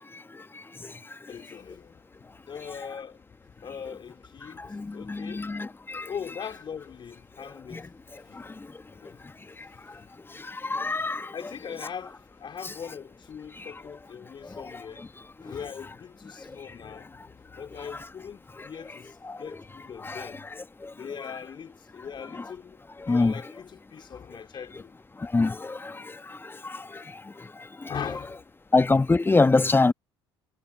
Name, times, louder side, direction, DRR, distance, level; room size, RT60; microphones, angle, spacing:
voice 1, 1.3-5.6 6.0-10.7 11.3-20.5 20.9-25.0 27.1-27.2 27.9-28.5, left 7 dB, 35° left, 4.6 m, -41 dB
voice 2, 4.7-5.7 5.9-6.1 7.7-7.8 10.7-11.3 12.6-12.7 19.3-19.4 20.0-20.3 23.1-23.3 25.3-25.8 26.6-26.7 27.9-28.0 28.7-29.9, left 3 dB, 15° left, 1.9 m, -23 dB
figure-of-eight pair, 60°, 14 cm